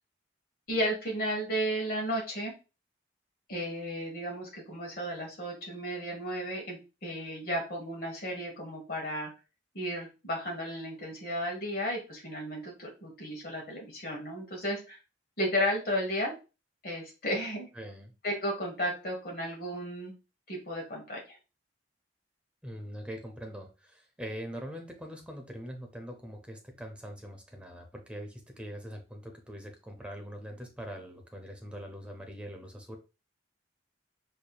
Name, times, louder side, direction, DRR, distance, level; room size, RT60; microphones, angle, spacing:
voice 1, 0.7-2.5 3.5-9.3 9.7-15.0 15.4-16.3 16.8-17.7 18.2-20.1 20.5-21.4, equal, 55° left, 0 dB, 1.4 m, -33 dB
voice 2, 17.7-18.1 22.6-33.0, equal, 5° right, 2 dB, 0.7 m, -43 dB
4.7 x 2.8 x 2.3 m, 0.31 s
head